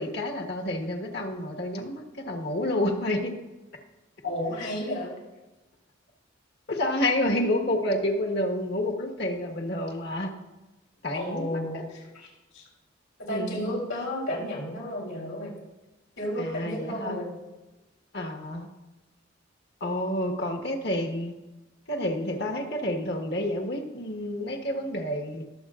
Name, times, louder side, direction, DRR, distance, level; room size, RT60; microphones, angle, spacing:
voice 1, 0.0-3.3 6.7-10.3 11.0-11.9 13.3-13.8 16.4-17.2 18.1-18.7 19.8-21.3 21.9-25.4, left 1 dB, 55° left, 2 dB, 1.5 m, -29 dB
voice 2, 4.2-5.1 11.1-12.3 12.5-12.6 13.3-15.5 16.2-17.3, left 1 dB, 85° left, -2 dB, 3.7 m, -32 dB
21.0 x 7.7 x 2.5 m, 1.1 s
head